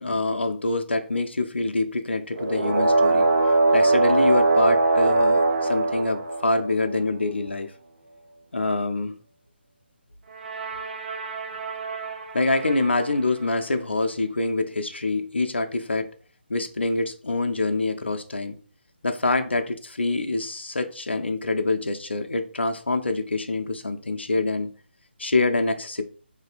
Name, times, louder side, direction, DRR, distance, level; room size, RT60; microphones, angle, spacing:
voice 1, 0.0-3.3 3.7-7.7 8.5-9.2 12.3-16.1 16.5-18.6 19.0-24.7 25.2-26.0, left 2 dB, 75° left, 0.4 m, -25 dB
sound 1, 2.3-6.9 10.3-13.2, right 2 dB, 50° right, 0.4 m, -22 dB
2.7 x 2.5 x 2.4 m
figure-of-eight pair, 145°, 6 cm